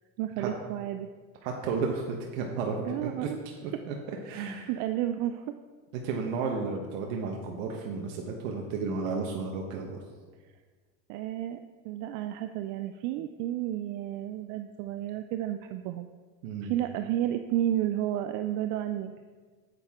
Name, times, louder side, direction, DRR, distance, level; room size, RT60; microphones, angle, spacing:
voice 1, 0.2-1.1 2.8-3.4 4.3-5.5 11.1-16.1 16.6-19.1, right 12 dB, 55° right, 8 dB, 0.5 m, -32 dB
voice 2, 1.4-3.3 3.6-4.0 4.2-4.7 5.9-10.0 16.4-16.7, right 4 dB, 80° right, 1 dB, 1.2 m, -33 dB
9.1 x 7.7 x 3.6 m, 1.5 s
cardioid pair, 145°, 39 cm